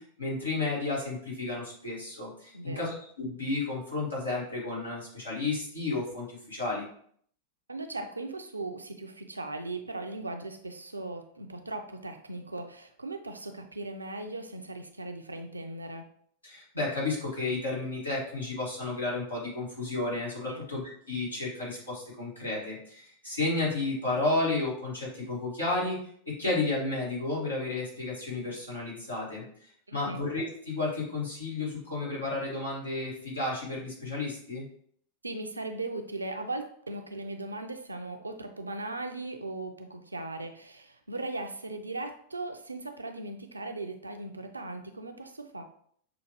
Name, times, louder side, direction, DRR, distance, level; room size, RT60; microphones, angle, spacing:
voice 1, 0.0-6.8 16.4-26.0 26.3-29.4 29.9-34.7, left 3 dB, 80° left, -6 dB, 2.0 m, -32 dB
voice 2, 2.5-3.0 7.7-16.1 20.5-20.6 29.9-30.2 35.2-45.6, right 2 dB, 80° right, 6 dB, 0.5 m, -38 dB
6.9 x 2.4 x 3.1 m, 0.63 s
figure-of-eight pair, 90°, 0 cm